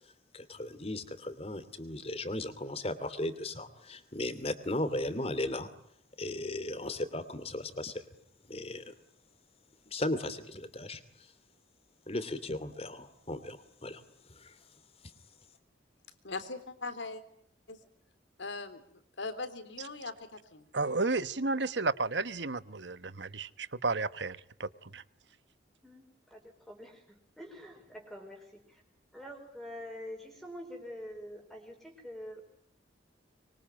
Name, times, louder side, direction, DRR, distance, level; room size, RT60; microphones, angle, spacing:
voice 1, 0.3-5.7 6.2-8.0 8.5-8.9 9.9-11.3 12.1-14.0 14.4-14.5, left 1 dB, 30° left, 12 dB, 2.8 m, -36 dB
voice 2, 16.2-17.2 17.7-17.8 18.4-18.8 19.2-20.7, left 3 dB, 80° left, 11 dB, 3.5 m, -40 dB
voice 3, 20.7-25.0, right 3 dB, 70° right, 14 dB, 1.2 m, -32 dB
voice 4, 25.8-28.8 29.1-32.4, equal, ahead, 2 dB, 5.0 m, -46 dB
25.5 x 23.5 x 9.0 m, 0.68 s
head